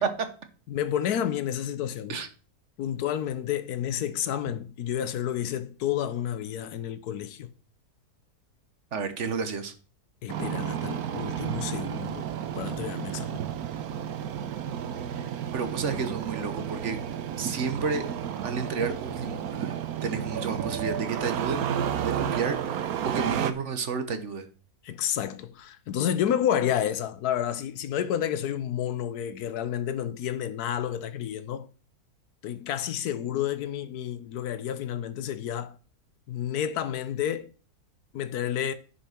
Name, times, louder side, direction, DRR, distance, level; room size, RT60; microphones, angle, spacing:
voice 1, 0.7-2.2 2.8-7.5 10.2-12.3 12.6-13.4 24.8-31.7 32.4-35.7 36.3-37.5 38.1-38.7, left 10 dB, 90° left, 1.3 m, -30 dB
voice 2, 8.9-9.7 15.1-17.0 17.4-18.0 18.4-21.7 22.0-24.5, right 5 dB, 55° right, 1.4 m, -31 dB
Engine starting, 10.3-23.5, right 9 dB, 80° right, 1.3 m, -32 dB
10.0 x 5.5 x 5.8 m
omnidirectional pair, 1.6 m